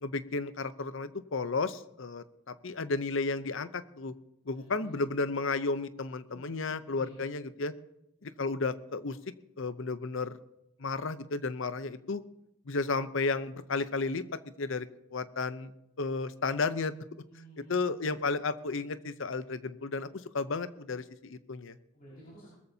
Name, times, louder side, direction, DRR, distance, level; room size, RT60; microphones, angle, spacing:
voice 1, 0.0-4.1 4.5-7.7 8.2-9.2 9.6-10.4 10.8-12.2 12.7-14.2 14.6-14.9 15.1-15.7 16.0-16.9 17.7-21.8, left 3 dB, 60° left, 13 dB, 0.7 m, -33 dB
voice 2, 4.5-5.0 6.3-7.2 17.3-18.0 21.9-22.5, right 1 dB, 40° left, -8 dB, 5.4 m, -53 dB
21.0 x 14.0 x 2.8 m, 0.83 s
head